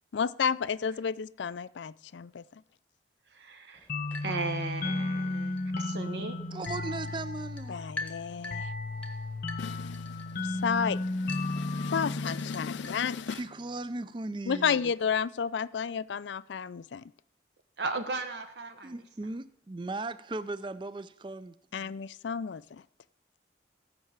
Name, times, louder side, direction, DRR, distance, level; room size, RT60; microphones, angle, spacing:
voice 1, 0.1-2.4 7.7-8.7 9.6-13.4 14.5-17.0 21.7-22.8, left 6 dB, 80° left, 0.4 m, -32 dB
voice 2, 3.3-3.9 4.2-6.4 17.8-18.9, right 3 dB, 70° right, 1.1 m, -36 dB
sound 1, 3.7-13.5, left 3 dB, 10° left, 1.0 m, -47 dB
sound 2, 3.9-13.3, left 2 dB, 50° left, 0.8 m, -34 dB
voice 3, 6.5-7.8 11.7-11.8 13.3-14.8 18.8-21.9, right 2 dB, 25° right, 0.4 m, -38 dB
16.5 x 5.7 x 7.3 m
head